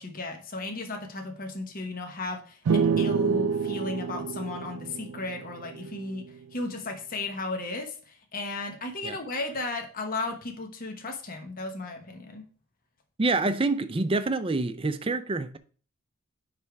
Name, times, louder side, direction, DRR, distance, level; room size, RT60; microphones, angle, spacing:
voice 1, 0.0-6.3 6.5-12.5, left 2 dB, 40° left, 1.0 m, -35 dB
sound 1, 2.7-6.2, right 5 dB, 85° right, 0.4 m, -28 dB
voice 2, 13.2-15.6, right 3 dB, 25° right, 0.5 m, -27 dB
9.8 x 3.4 x 4.7 m
head